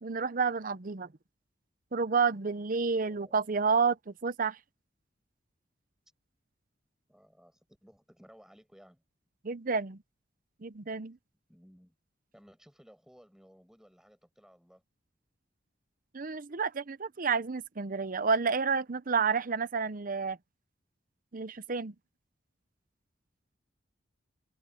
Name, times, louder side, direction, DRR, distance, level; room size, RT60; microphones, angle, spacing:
voice 1, 0.0-1.1 1.9-4.6 9.4-10.0 10.6-11.2 16.1-20.4 21.3-21.9, right 5 dB, 45° right, 0.7 m, -30 dB
voice 2, 2.9-3.5 7.1-9.0 11.5-11.9 12.3-14.8, equal, 5° right, 5.9 m, -58 dB
head